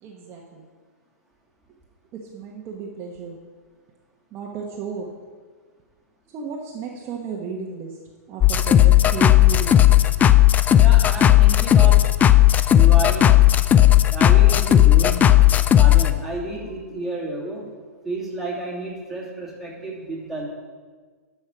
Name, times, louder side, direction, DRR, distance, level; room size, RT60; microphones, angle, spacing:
voice 1, 0.0-0.7 2.3-3.4 4.3-5.1 6.3-8.0 8.3-9.7, right 5 dB, 30° right, -1 dB, 1.2 m, -33 dB
sound 1, 8.4-16.1, left 12 dB, 20° left, 0.4 m, -14 dB
voice 2, 10.8-12.1 12.7-13.4 14.1-15.4 15.8-17.7 18.0-20.5, right 2 dB, ahead, -6 dB, 2.7 m, -31 dB
11.5 x 5.6 x 6.1 m, 1.5 s
hypercardioid pair, 120°, 9 cm